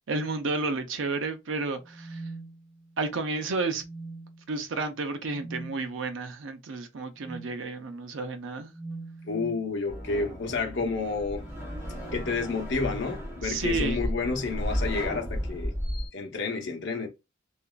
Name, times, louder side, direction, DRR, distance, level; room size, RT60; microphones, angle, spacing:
voice 1, 0.1-2.2 3.0-3.8 4.5-8.7 13.4-14.0, right 3 dB, 70° right, 0.5 m, -31 dB
sound 1, 1.8-3.1 3.7-4.5 5.3-5.8 7.2-7.6 8.7-9.7 11.2-13.1 14.1-14.6 15.8-16.1, right 2 dB, 30° right, 1.1 m, -43 dB
voice 2, 9.3-11.4 12.1-15.7 16.1-17.1, left 4 dB, 60° left, 0.7 m, -30 dB
sound 2, 9.9-16.1, equal, 10° right, 1.7 m, -34 dB
2.9 x 2.4 x 2.3 m
head